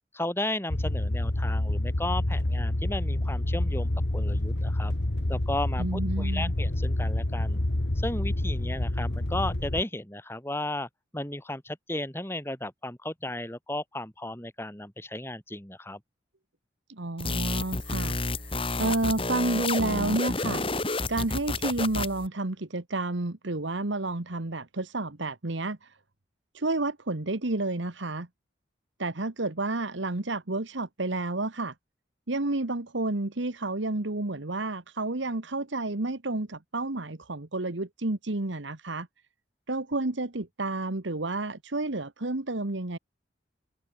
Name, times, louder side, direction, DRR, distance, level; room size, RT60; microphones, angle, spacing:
voice 1, 0.1-4.9 5.3-7.6 8.0-10.9 11.1-16.0, left 1 dB, 10° left, 3.5 m, -34 dB
sound 1, 0.7-9.8, left 1 dB, 60° left, 1.7 m, -28 dB
voice 2, 5.8-6.5 16.9-18.2 18.4-20.6 21.1-25.9 26.5-28.3 29.0-31.7 32.3-39.1 39.7-43.0, right 2 dB, 75° right, 1.5 m, -30 dB
sound 2, 17.2-22.3, left 2 dB, 30° left, 3.8 m, -30 dB
head